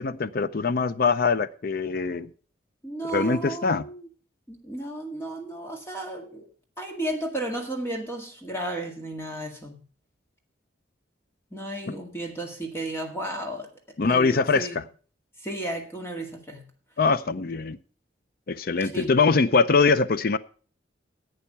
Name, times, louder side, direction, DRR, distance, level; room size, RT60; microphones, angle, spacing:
voice 1, 0.0-2.3 3.1-3.8 14.0-14.8 17.0-17.8 18.5-20.4, left 4 dB, 50° left, 0.5 m, -23 dB
voice 2, 2.8-4.1 4.5-6.5 6.8-9.7 11.5-14.8 15.4-16.7 18.8-19.2, right 1 dB, 15° left, 1.9 m, -34 dB
11.5 x 8.3 x 5.6 m
head